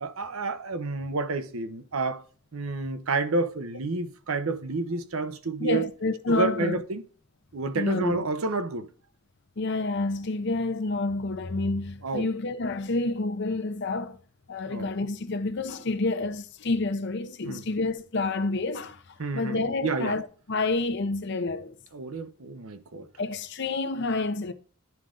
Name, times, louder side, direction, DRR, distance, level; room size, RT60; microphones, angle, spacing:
voice 1, 0.0-2.2 2.5-5.9 6.3-7.0 7.5-8.9 12.0-12.3 14.7-14.9 17.4-17.6 19.2-20.2 21.9-23.1, right 3 dB, 85° right, 0.8 m, -30 dB
voice 2, 5.6-6.8 7.7-8.2 9.6-14.2 14.5-19.0 19.3-21.8 23.2-24.5, left 3 dB, 55° left, 0.7 m, -29 dB
10.5 x 3.7 x 3.7 m
head